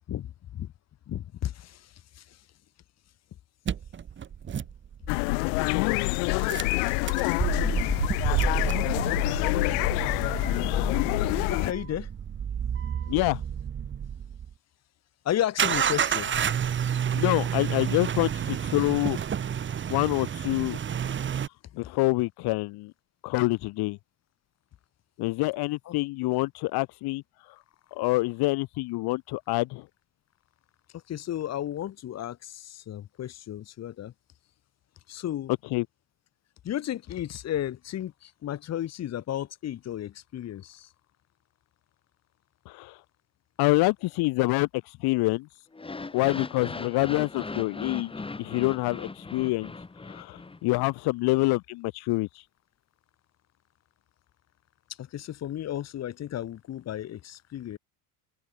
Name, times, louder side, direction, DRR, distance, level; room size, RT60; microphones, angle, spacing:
voice 1, 0.1-0.7 1.1-2.4 11.5-12.1 15.3-16.3 25.9-26.0 30.9-34.1 35.1-35.5 36.6-40.9 55.0-57.8, left 12 dB, 35° left, 1.9 m, -34 dB
sound 1, 3.7-5.3 6.4-14.5 15.6-21.5, right 8 dB, 25° right, 1.8 m, -30 dB
sound 2, 5.1-11.7, left 40 dB or more, 70° left, 0.6 m, -26 dB
voice 2, 13.1-13.4 17.1-19.2 19.9-21.2 21.7-22.9 23.2-24.0 25.2-27.2 27.9-29.9 35.7-35.8 42.7-43.0 43.6-45.5 46.1-48.1 48.4-49.7 50.0-52.3, left 21 dB, 50° left, 1.5 m, -26 dB
sound 3, 45.7-50.9, left 3 dB, 10° left, 4.7 m, -39 dB
open air
cardioid pair, 145°, 47 cm